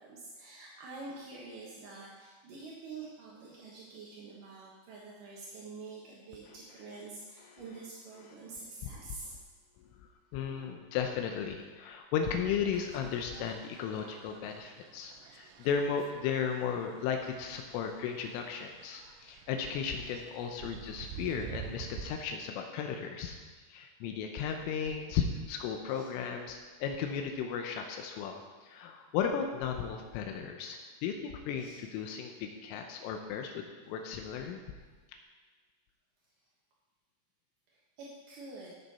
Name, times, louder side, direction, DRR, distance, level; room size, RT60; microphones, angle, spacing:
voice 1, 0.0-9.3 13.8-14.2 15.2-15.5 25.9-26.1 26.7-26.8 31.6-31.8 38.0-38.7, right 3 dB, 70° right, -4 dB, 2.1 m, -47 dB
voice 2, 10.3-23.4 23.7-34.6, left 7 dB, 85° left, 3 dB, 3.4 m, -35 dB
sound 1, 12.7-22.2, right 9 dB, 85° right, 2.6 m, -49 dB
15.5 x 7.2 x 4.2 m, 1.4 s
omnidirectional pair, 5.7 m